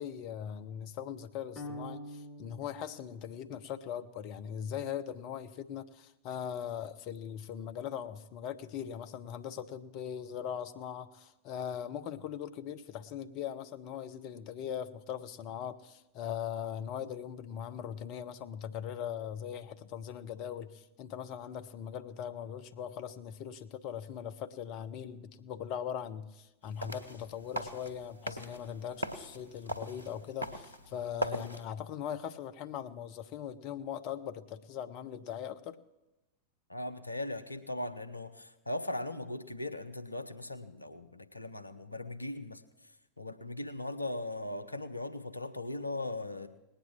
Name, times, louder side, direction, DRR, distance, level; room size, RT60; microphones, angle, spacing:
voice 1, 0.0-35.8, left 9 dB, 40° left, 10 dB, 0.9 m, -40 dB
sound 1, 1.6-3.9, left 1 dB, 20° left, 3.0 m, -46 dB
sound 2, 26.6-31.6, right 1 dB, 85° right, 1.2 m, -40 dB
voice 2, 36.7-46.5, left 2 dB, 85° left, 10 dB, 0.8 m, -39 dB
19.0 x 9.0 x 7.3 m, 0.98 s
figure-of-eight pair, 90°, 0 cm